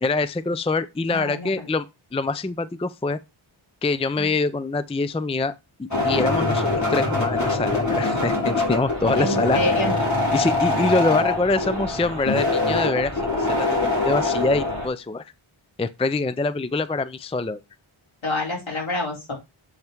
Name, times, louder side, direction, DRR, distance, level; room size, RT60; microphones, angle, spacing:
voice 1, 0.0-1.9 2.1-3.2 3.8-5.5 5.8-9.6 10.3-13.1 13.4-15.2 15.8-17.6, left 3 dB, 15° left, 0.4 m, -24 dB
voice 2, 1.1-1.7 9.2-10.0 18.2-19.3, left 1 dB, 65° left, 4.1 m, -28 dB
sound 1, 5.9-14.9, left 2 dB, 35° left, 4.0 m, -23 dB
8.0 x 5.4 x 4.5 m
wide cardioid pair, 80°, 49 cm